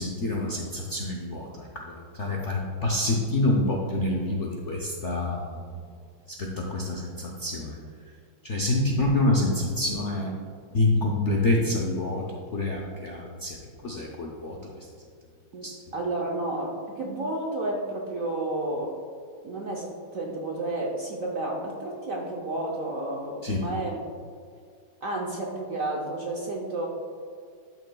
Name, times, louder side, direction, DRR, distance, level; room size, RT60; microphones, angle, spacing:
voice 1, 0.0-5.7 6.4-7.8 8.4-10.3 10.7-13.6 13.8-14.6 15.6-15.7 23.4-23.6, left 2 dB, 60° left, -1 dB, 0.7 m, -27 dB
voice 2, 15.9-19.0 19.4-24.0 25.0-26.9, right 2 dB, 60° right, -1 dB, 0.9 m, -31 dB
11.5 x 6.1 x 2.2 m, 2.2 s
omnidirectional pair, 2.2 m